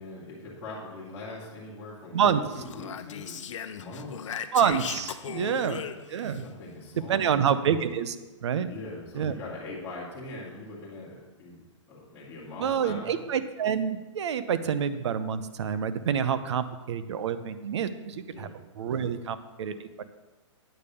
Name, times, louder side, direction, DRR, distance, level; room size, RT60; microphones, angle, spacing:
voice 1, 0.0-3.4 3.7-4.4 5.2-6.0 6.3-7.5 8.6-13.2 18.3-18.6, left 2 dB, 15° left, -9 dB, 2.4 m, -42 dB
Speech, 2.5-6.4, left 8 dB, 70° left, 0.7 m, -38 dB
voice 2, 4.5-5.8 6.1-6.4 7.1-8.2 8.4-8.7 9.1-9.3 12.6-18.5 18.8-20.0, right 8 dB, 60° right, 12 dB, 0.8 m, -27 dB
8.9 x 5.2 x 7.0 m, 1.1 s
hypercardioid pair, 155°, 16 cm